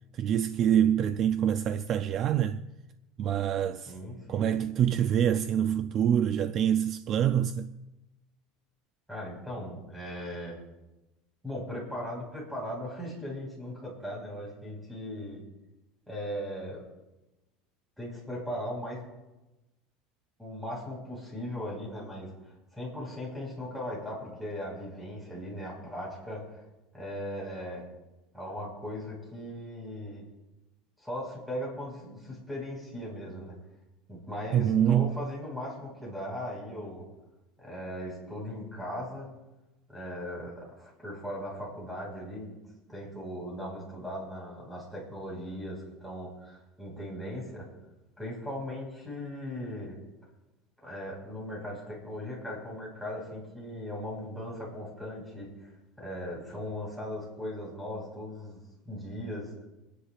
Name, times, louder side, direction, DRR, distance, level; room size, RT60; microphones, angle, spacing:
voice 1, 0.1-2.6 3.2-4.0 4.3-7.7 34.5-35.2, right 9 dB, 35° right, 0.4 m, -26 dB
voice 2, 3.9-4.6 9.1-10.6 11.4-15.4 16.1-16.8 18.0-19.0 20.4-26.6 26.9-27.8 28.3-30.3 31.0-33.6 34.1-37.0 37.6-39.3 39.9-42.6 42.9-47.6 48.2-50.0 50.8-59.6, equal, ahead, 5.0 m, -38 dB
28.0 x 10.0 x 2.5 m
cardioid pair, 155°, 0 cm